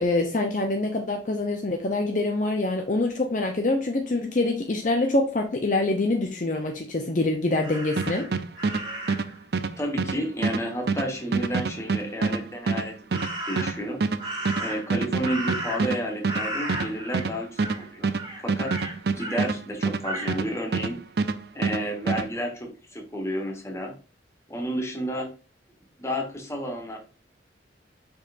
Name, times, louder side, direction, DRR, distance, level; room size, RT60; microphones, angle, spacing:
voice 1, 0.0-8.3, left 2 dB, 45° left, 3 dB, 0.7 m, -25 dB
Crow, 7.6-9.3 13.1-13.8 14.2-16.0 16.3-17.3 17.6-17.8 18.1-19.5 20.0-20.4, right 1 dB, 25° right, 2.4 m, -34 dB
sound 1, 8.0-20.9 21.2-22.3, right 4 dB, 55° right, 0.5 m, -26 dB
voice 2, 9.8-13.2 13.5-14.0 14.6-18.1 18.4-18.7 19.2-21.0 21.5-24.0 24.5-25.3 26.0-27.0, equal, 15° left, 2 dB, 1.4 m, -31 dB
7.0 x 5.4 x 2.6 m, 0.33 s
head